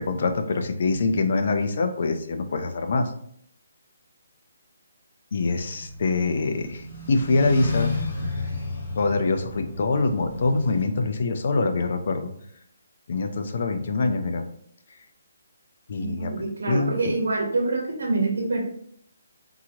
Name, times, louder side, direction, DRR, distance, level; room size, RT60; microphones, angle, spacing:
voice 1, 0.0-3.1 5.3-8.0 9.0-12.3 13.1-14.4 15.9-16.3 16.7-16.9, left 3 dB, 55° left, 7 dB, 0.5 m, -24 dB
sound 1, 5.4-10.9, left 2 dB, 40° left, 1.2 m, -32 dB
voice 2, 16.0-18.6, right 3 dB, 75° right, -1 dB, 1.0 m, -26 dB
3.8 x 2.9 x 2.8 m, 0.65 s
hypercardioid pair, 160°, 0 cm